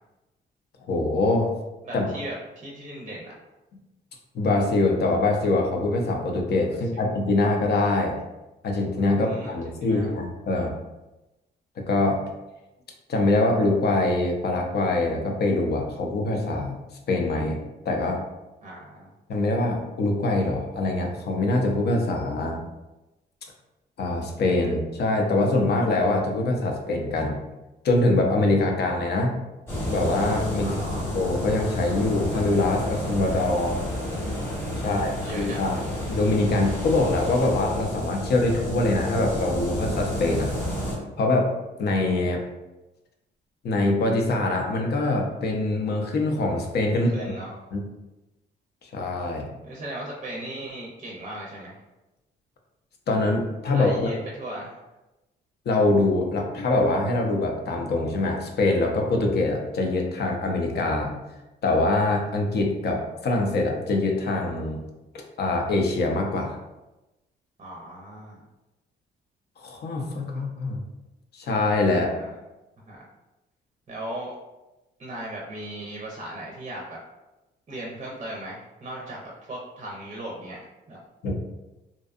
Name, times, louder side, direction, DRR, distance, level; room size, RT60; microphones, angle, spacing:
voice 1, 0.9-1.5 1.9-2.1 4.3-8.2 8.6-10.7 11.9-12.2 13.1-16.7 17.1-18.2 19.3-22.6 24.0-27.4 27.8-29.3 29.9-30.7 31.1-33.8 34.8-35.8 36.1-40.5 41.2-41.5 41.8-42.4 43.6-47.1 47.7-47.8 48.9-49.5 53.1-54.1 55.7-61.1 61.6-64.8 65.4-66.6 69.6-70.8 71.3-72.1 81.2-81.3, left 2 dB, 55° left, 1 dB, 0.5 m, -24 dB
voice 2, 1.8-3.3 6.7-7.0 9.2-10.1 18.6-19.1 30.6-31.1 34.9-35.8 46.9-47.5 49.6-51.8 53.7-54.8 67.6-68.4 71.9-72.3 72.9-73.0 73.9-74.4 75.0-77.0 77.7-80.6 80.9-81.0, right 1 dB, 35° right, -3 dB, 0.5 m, -38 dB
sound 1, 29.7-41.0, left 1 dB, 15° left, 0.9 m, -30 dB
2.6 x 2.3 x 2.4 m, 1.0 s
cardioid pair, 90°, 20 cm